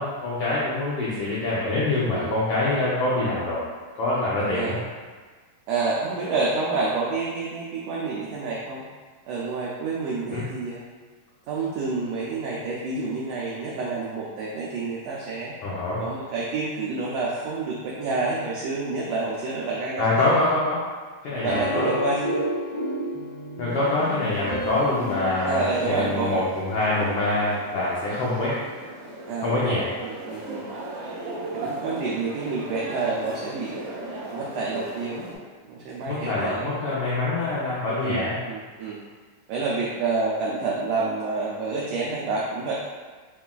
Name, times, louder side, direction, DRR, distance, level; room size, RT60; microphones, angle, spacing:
voice 1, 0.0-3.6 4.0-4.8 10.3-10.4 15.6-16.1 20.0-20.8 21.2-21.9 23.6-28.6 29.4-29.9 36.1-38.4, left 2 dB, 85° left, -8 dB, 1.2 m, -25 dB
voice 2, 5.7-8.8 9.3-10.8 11.5-15.5 16.0-20.4 21.4-22.3 25.4-26.4 29.3-30.7 31.5-33.8 34.3-35.3 35.7-36.7 38.0-39.0 39.5-42.7, right 3 dB, 85° right, -5 dB, 1.4 m, -28 dB
sound 1, 21.5-23.4 24.5-26.9, equal, 35° left, 1.1 m, -37 dB
sound 2, 21.7-26.3, equal, 45° right, 0.4 m, -31 dB
sound 3, 23.7-35.4, right 1 dB, 70° right, 1.4 m, -37 dB
5.5 x 2.3 x 2.2 m, 1.4 s
omnidirectional pair, 3.3 m